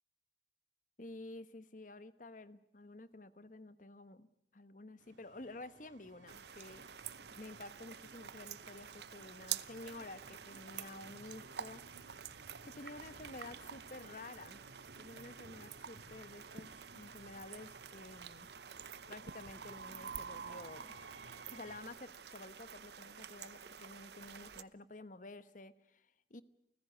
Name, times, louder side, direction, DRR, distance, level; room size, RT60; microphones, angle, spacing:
voice 1, 1.0-4.3 4.5-6.8 7.4-11.8 12.6-14.6 15.0-18.5 19.1-20.9 21.5-26.4, left 2 dB, 45° left, 13 dB, 1.2 m, -51 dB
Train, 5.0-21.8, right 4 dB, 80° right, 3.0 m, -55 dB
sound 1, 6.3-24.6, right 9 dB, 65° right, 0.8 m, -49 dB
29.0 x 15.5 x 9.3 m, 0.80 s
head